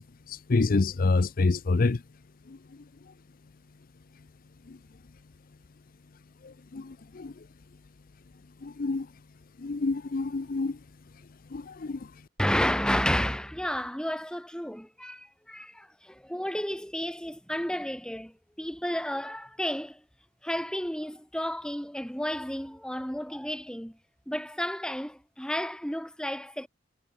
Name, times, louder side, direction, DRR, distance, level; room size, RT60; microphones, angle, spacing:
voice 1, 0.0-2.0 2.5-2.6 4.7-4.8 6.4-7.3 8.6-9.1 9.6-10.8 11.5-12.1, left 3 dB, 50° left, 0.6 m, -28 dB
voice 2, 12.4-20.0 20.4-24.0 24.3-26.7, equal, 5° left, 3.6 m, -31 dB
head